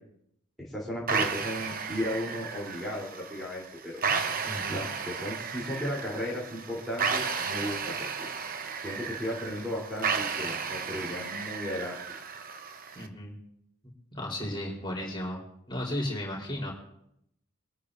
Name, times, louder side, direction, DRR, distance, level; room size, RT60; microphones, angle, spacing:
voice 1, 0.6-3.9 4.7-7.8 8.2-8.3 8.8-12.0, left 1 dB, ahead, -6 dB, 3.6 m, -35 dB
sound 1, 1.1-13.1, right 5 dB, 45° right, 0.9 m, -33 dB
voice 2, 4.5-4.8 12.9-13.3 14.1-15.4 15.7-16.7, left 1 dB, 25° left, -2 dB, 4.1 m, -34 dB
23.5 x 13.5 x 2.7 m, 0.73 s
head